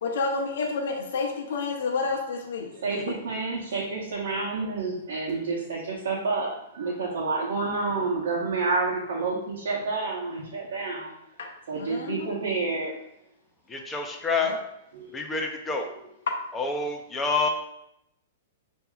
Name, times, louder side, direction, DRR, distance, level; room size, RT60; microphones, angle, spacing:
voice 1, 0.0-2.7 11.4-12.3 14.3-14.6, left 4 dB, 80° left, 1 dB, 0.7 m, -30 dB
voice 2, 2.7-11.1 11.7-12.9 14.9-15.1, right 3 dB, 75° right, -4 dB, 0.9 m, -29 dB
voice 3, 13.7-14.5 15.1-15.8 16.6-17.5, left 4 dB, 10° left, 2 dB, 0.6 m, -27 dB
6.9 x 2.7 x 2.3 m, 0.81 s
hypercardioid pair, 155°, 0 cm